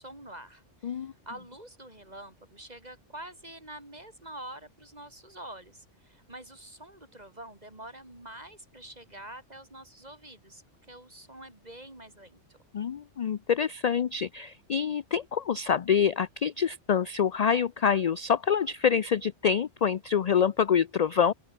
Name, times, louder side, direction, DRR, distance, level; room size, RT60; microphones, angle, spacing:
voice 1, 0.0-10.6 10.9-12.6, right 1 dB, 35° right, 5.7 m, -46 dB
voice 2, 12.7-21.3, left 7 dB, 50° left, 0.4 m, -26 dB
open air
omnidirectional pair, 1.2 m